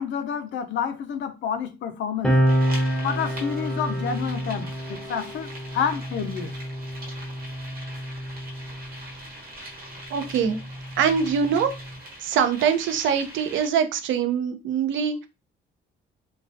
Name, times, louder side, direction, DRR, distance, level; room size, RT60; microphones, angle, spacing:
voice 1, 0.0-2.4 3.0-6.5, left 7 dB, 70° left, 0.5 m, -29 dB
sound 1, 2.2-9.2 10.1-12.0, equal, 5° left, 0.6 m, -28 dB
sound 2, 2.5-13.7, right 1 dB, 50° right, 1.0 m, -42 dB
voice 2, 10.1-10.6 11.0-11.7 12.2-15.3, right 7 dB, 75° right, 0.5 m, -23 dB
2.3 x 2.2 x 2.5 m
cardioid pair, 90°, 20 cm